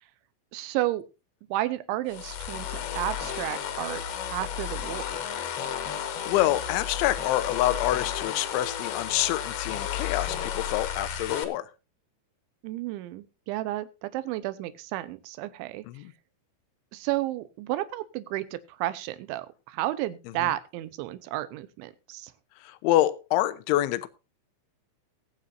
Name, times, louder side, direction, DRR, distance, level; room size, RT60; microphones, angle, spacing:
voice 1, 0.5-1.0 1.5-4.0 4.3-5.2 12.6-15.8 16.9-22.3, right 15 dB, 80° right, 3.3 m, -32 dB
sound 1, 2.1-11.4, left 9 dB, 65° left, 3.3 m, -33 dB
voice 2, 6.0-11.7 15.9-16.1 20.4-20.5 22.6-24.1, left 15 dB, 85° left, 3.3 m, -27 dB
20.0 x 9.7 x 2.7 m
omnidirectional pair, 5.4 m